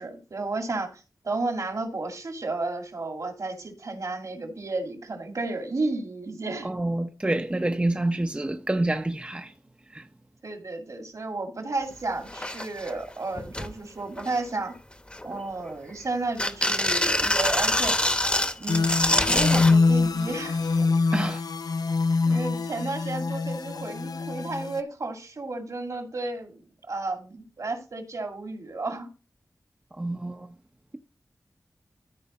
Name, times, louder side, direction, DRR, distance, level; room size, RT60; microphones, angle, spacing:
voice 1, 0.0-6.7 10.4-14.7 15.2-18.0 18.6-21.0 22.3-29.1, right 3 dB, 60° right, 2.3 m, -32 dB
voice 2, 6.6-9.5 9.8-10.1 21.1-21.4 22.3-22.4 29.9-30.5, right 1 dB, 20° right, 0.7 m, -28 dB
sound 1, 11.9-12.0 12.3-12.9 13.4-13.7 14.2-14.6 15.1-15.9 16.4-19.8 20.8-20.9, left 1 dB, 15° left, 1.0 m, -25 dB
sound 2, 18.7-24.8, left 4 dB, 85° left, 0.5 m, -24 dB
14.0 x 4.6 x 4.2 m
wide cardioid pair, 80°, 6 cm